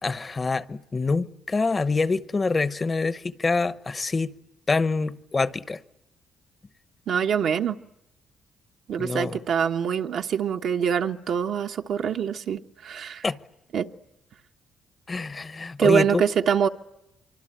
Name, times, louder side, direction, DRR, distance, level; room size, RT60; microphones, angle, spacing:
voice 1, 0.0-4.3 4.7-5.8 9.0-9.4 13.2-13.4 15.1-16.2, left 3 dB, 30° left, 0.9 m, -26 dB
voice 2, 7.1-7.8 8.9-13.2 13.7-13.9 15.8-16.7, right 7 dB, 70° right, 1.2 m, -24 dB
25.0 x 25.0 x 9.0 m
cardioid pair, 90°, 0 cm